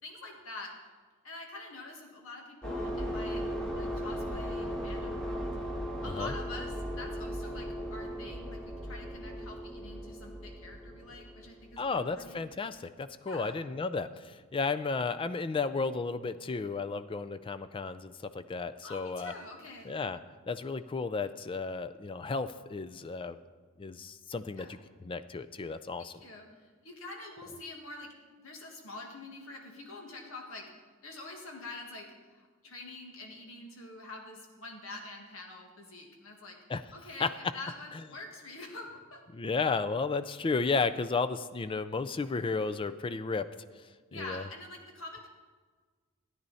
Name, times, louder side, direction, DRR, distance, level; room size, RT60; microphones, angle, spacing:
voice 1, 0.0-0.7 1.2-3.4 3.7-5.5 6.0-12.4 13.3-13.6 18.8-19.9 24.6-24.8 26.0-28.1 28.4-30.7 31.0-36.6 36.9-39.2 44.1-45.3, left 2 dB, 75° left, 2 dB, 1.8 m, -46 dB
sound 1, 2.6-12.1, equal, 5° left, 1.4 m, -37 dB
voice 2, 6.0-6.3 11.8-19.3 19.9-20.2 20.5-23.4 23.8-24.7 25.0-26.1 36.7-36.8 37.2-37.3 39.3-43.4 44.1-44.4, left 4 dB, 25° left, 11 dB, 0.4 m, -33 dB
13.5 x 9.6 x 4.1 m, 1.5 s
head